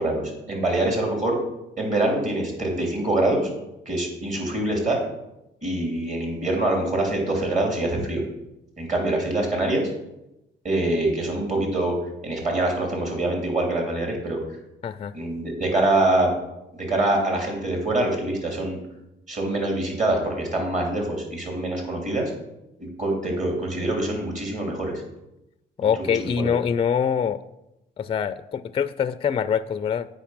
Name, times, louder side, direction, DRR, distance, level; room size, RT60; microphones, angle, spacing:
voice 1, 0.0-1.4 1.8-3.5 3.8-5.0 5.6-8.2 8.8-9.9 10.6-12.0 12.2-14.4 15.1-16.3 16.7-18.8 19.3-22.3 23.0-25.0 25.8-26.5, right 2 dB, 40° right, 1 dB, 3.2 m, -24 dB
voice 2, 14.8-15.1 25.8-27.4 28.0-30.1, left 7 dB, 30° left, 13 dB, 0.4 m, -24 dB
8.3 x 5.3 x 5.9 m, 0.90 s
cardioid pair, 90°, 20 cm